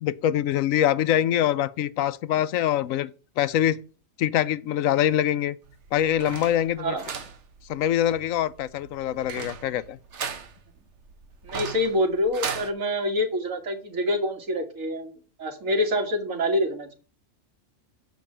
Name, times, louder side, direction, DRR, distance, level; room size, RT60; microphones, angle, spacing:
voice 1, 0.0-3.8 4.2-5.6 5.9-7.0 7.7-10.0, left 11 dB, 90° left, 1.0 m, -24 dB
sound 1, 5.6-12.7, right 6 dB, 65° right, 1.3 m, -38 dB
voice 2, 11.4-15.1 15.4-17.0, left 1 dB, 85° right, 2.2 m, -26 dB
7.3 x 5.2 x 7.3 m
omnidirectional pair, 1.4 m